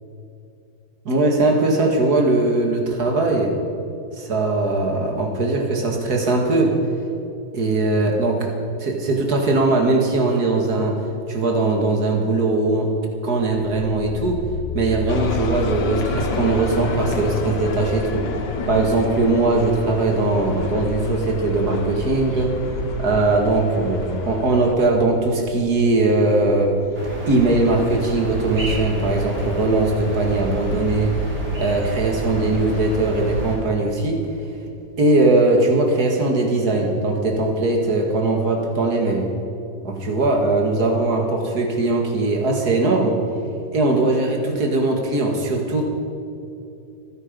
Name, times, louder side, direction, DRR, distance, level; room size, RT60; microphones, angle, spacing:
voice 1, 1.1-3.5 4.2-6.8 7.5-8.5 8.8-11.0 11.3-12.9 13.2-14.4 14.7-18.3 18.7-22.6 23.0-26.8 27.3-31.2 31.6-34.2 35.0-39.3 39.8-43.2 43.7-45.9, right 2 dB, 50° right, 2 dB, 2.4 m, -20 dB
sound 1, 13.5-26.9, left 7 dB, 45° left, 0.9 m, -35 dB
sound 2, 15.1-24.7, left 3 dB, 75° left, 2.1 m, -30 dB
sound 3, 26.9-33.6, right 1 dB, 35° right, 4.6 m, -29 dB
25.5 x 10.0 x 5.3 m, 2.7 s
omnidirectional pair, 2.1 m